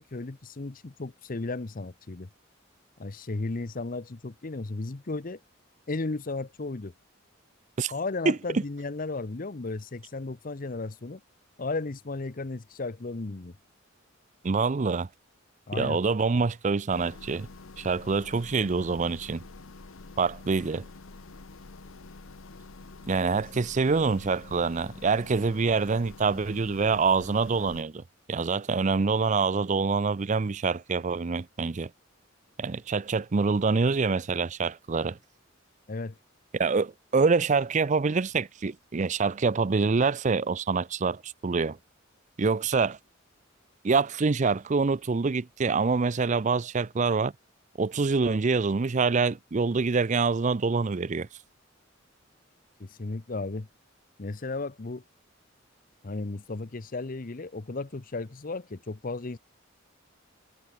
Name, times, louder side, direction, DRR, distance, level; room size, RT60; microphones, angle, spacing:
voice 1, 0.0-2.3 3.0-5.4 5.9-6.9 7.9-11.2 11.6-13.5 15.7-16.0 23.3-23.4 35.9-36.2 52.8-53.7 54.2-55.0 56.0-59.4, left 3 dB, 45° left, 0.8 m, -34 dB
voice 2, 14.4-15.1 15.7-17.5 17.8-19.4 20.2-20.8 23.1-28.0 28.3-31.9 32.6-35.2 36.5-41.8 42.4-43.0 43.8-47.3 47.8-51.3, right 4 dB, 35° right, 0.5 m, -26 dB
sound 1, 16.9-27.8, left 3 dB, 90° left, 1.1 m, -47 dB
head